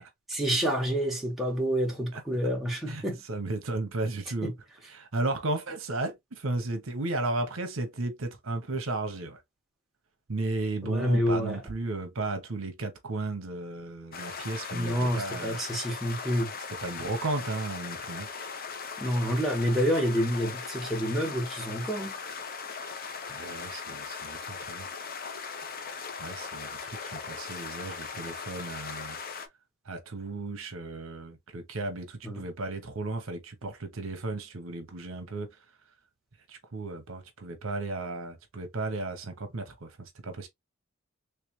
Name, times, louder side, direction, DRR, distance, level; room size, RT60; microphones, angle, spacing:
voice 1, 0.3-3.2 4.4-4.5 10.8-11.6 14.7-16.5 19.0-22.2 32.2-32.4, equal, ahead, 1.4 m, -28 dB
voice 2, 3.3-4.5 4.9-9.4 10.3-15.7 16.8-18.3 23.3-24.9 26.2-29.2 29.8-35.6 36.5-40.5, right 2 dB, 70° right, 0.9 m, -34 dB
sound 1, 14.1-29.5, left 5 dB, 45° left, 0.7 m, -39 dB
3.4 x 3.2 x 3.0 m
head